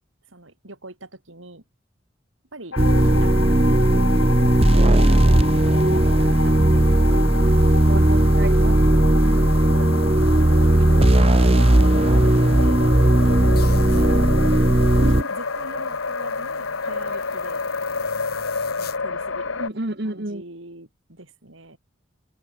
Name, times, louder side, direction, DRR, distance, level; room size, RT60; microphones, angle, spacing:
voice 1, 0.3-1.6 2.5-3.8 4.2-7.0 9.2-10.9 11.2-12.9 13.3-14.8 15.0-17.6 18.8-21.8, right 2 dB, 80° right, 4.9 m, -42 dB
sound 1, 2.7-19.7, left 4 dB, 85° left, 1.5 m, -30 dB
sound 2, 2.8-15.2, right 1 dB, 30° right, 1.0 m, -16 dB
voice 2, 3.4-3.8 7.9-8.8 10.7-10.9 14.9-15.3 19.6-20.4, right 1 dB, 55° right, 2.0 m, -31 dB
sound 3, 13.6-19.0, left 10 dB, 50° left, 4.5 m, -45 dB
open air
head